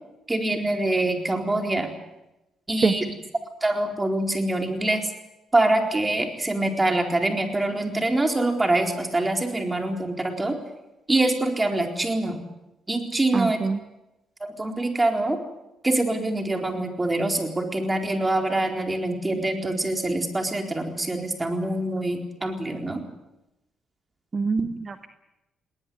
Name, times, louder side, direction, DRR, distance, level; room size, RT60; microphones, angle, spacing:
voice 1, 0.3-1.9 2.7-3.0 3.6-5.0 5.5-10.5 11.1-12.4 12.9-13.6 14.4-15.4 15.8-23.0, right 2 dB, 20° right, 4 dB, 4.2 m, -25 dB
voice 2, 13.3-13.8 24.3-25.1, right 4 dB, 35° right, 9 dB, 1.3 m, -24 dB
20.0 x 19.0 x 9.5 m, 0.94 s
cardioid pair, 90°, 0 cm